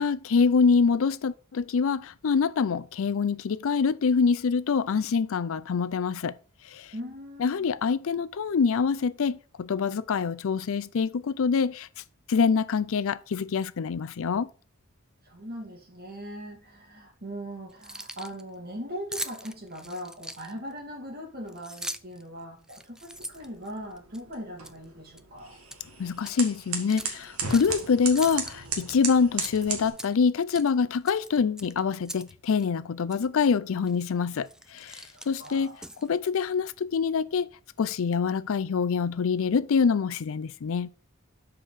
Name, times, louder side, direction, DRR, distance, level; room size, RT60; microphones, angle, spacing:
voice 1, 0.0-6.4 6.7-6.9 7.4-11.9 12.3-14.5 26.0-35.8 36.0-37.5 37.8-40.9, left 5 dB, 65° left, 0.4 m, -25 dB
voice 2, 6.9-7.7 15.2-25.6 28.3-28.4 35.1-35.8, equal, 45° right, 2.5 m, -40 dB
Keys jangling, 17.7-18.4 19.1-20.7 21.5-22.2 22.6-24.2 24.6-24.8 25.2-25.8 26.2-26.4 26.9-27.8 28.2-29.0 29.4-30.3 30.5-30.7 31.1-32.3 32.6-32.7 33.1-33.3 33.9-34.1 34.4-36.2, right 1 dB, 5° right, 0.3 m, -40 dB
sound 1, 23.1-29.9, right 6 dB, 85° right, 1.7 m, -36 dB
6.4 x 4.9 x 5.7 m
head